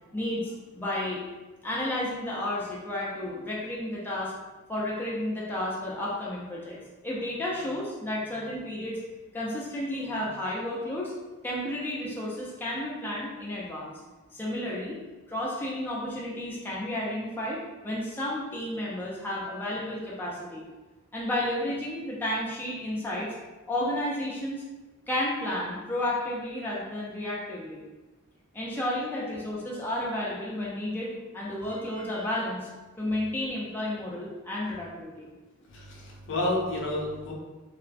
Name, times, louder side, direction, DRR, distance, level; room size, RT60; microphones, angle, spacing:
voice 1, 0.1-1.2 1.6-4.3 4.7-9.0 9.3-11.1 11.4-14.0 14.3-15.0 15.3-20.6 21.1-23.3 23.7-24.6 25.1-27.8 28.5-32.7 33.0-35.3, left 1 dB, 10° left, -6 dB, 0.4 m, -32 dB
voice 2, 35.7-37.3, left 1 dB, 60° left, -2 dB, 0.5 m, -30 dB
2.4 x 2.1 x 2.4 m, 1.2 s
head